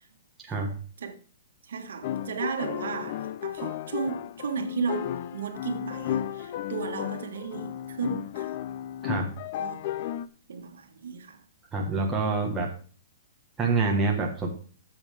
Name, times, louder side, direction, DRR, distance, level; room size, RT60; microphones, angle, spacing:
voice 1, 1.7-8.5 9.6-9.8 10.5-11.4, right 5 dB, 75° right, 1.6 m, -34 dB
sound 1, 2.0-10.3, left 11 dB, 30° left, 0.4 m, -34 dB
voice 2, 11.7-12.7 13.6-14.5, right 3 dB, 10° right, 1.3 m, -26 dB
13.0 x 7.1 x 3.4 m
hypercardioid pair, 180°, 0 cm